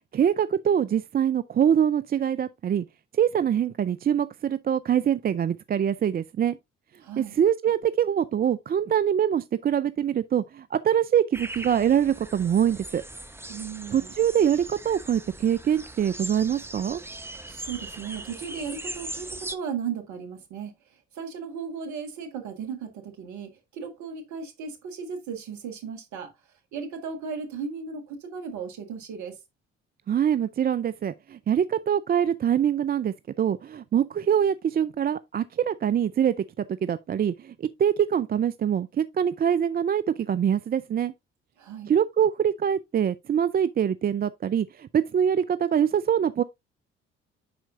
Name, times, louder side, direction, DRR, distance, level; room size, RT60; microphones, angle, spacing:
voice 1, 0.1-2.8 3.1-6.6 7.2-13.0 13.9-17.0 30.1-41.1 41.9-46.4, right 9 dB, 30° right, 0.4 m, -24 dB
voice 2, 7.0-7.4 13.5-14.1 17.5-20.7 21.1-26.3 26.7-29.4 41.6-41.9, right 6 dB, 70° right, 1.7 m, -36 dB
sound 1, 11.3-19.6, right 1 dB, 10° right, 0.9 m, -40 dB
10.5 x 4.4 x 2.5 m
hypercardioid pair, 50°, 30 cm